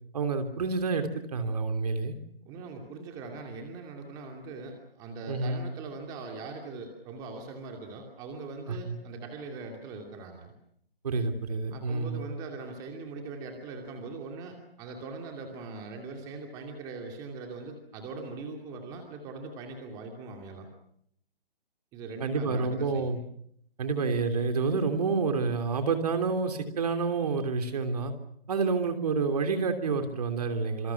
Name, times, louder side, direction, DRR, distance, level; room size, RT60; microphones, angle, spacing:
voice 1, 0.1-2.2 5.3-5.7 8.7-9.0 11.0-12.3 22.2-23.2 23.8-28.1 28.5-30.9, right 4 dB, 40° right, 7 dB, 3.2 m, -28 dB
voice 2, 2.4-10.5 11.7-20.7 21.9-23.1, right 3 dB, 10° right, 3 dB, 2.6 m, -41 dB
27.5 x 26.0 x 5.9 m, 0.67 s
hypercardioid pair, 160°, 30 cm